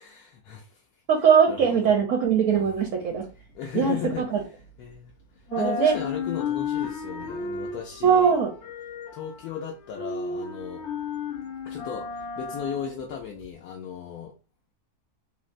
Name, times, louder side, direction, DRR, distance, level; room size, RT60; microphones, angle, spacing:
voice 1, 0.0-1.0 1.5-1.9 2.6-2.7 3.5-4.3 4.8-5.1 5.5-8.4 9.1-10.8 11.6-14.3, left 8 dB, 90° left, 0 dB, 1.1 m, -36 dB
voice 2, 1.1-3.3 3.7-4.4 5.5-5.9 8.0-8.5, right 7 dB, 65° right, 2 dB, 0.8 m, -21 dB
sound 1, 2.2-5.1 5.4-13.5, left 5 dB, 70° left, 0.7 m, -34 dB
3.5 x 2.0 x 2.4 m, 0.34 s
omnidirectional pair, 1.6 m